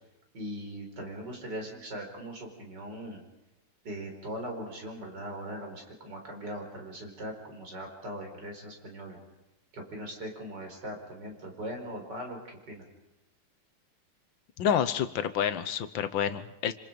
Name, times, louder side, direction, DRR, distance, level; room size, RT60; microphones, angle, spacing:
voice 1, 0.3-3.2 3.8-9.2 9.7-12.9, equal, 50° right, 2 dB, 5.2 m, -40 dB
voice 2, 14.6-16.7, left 8 dB, 65° left, 10 dB, 1.7 m, -28 dB
26.5 x 26.5 x 5.3 m, 0.97 s
omnidirectional pair, 2.4 m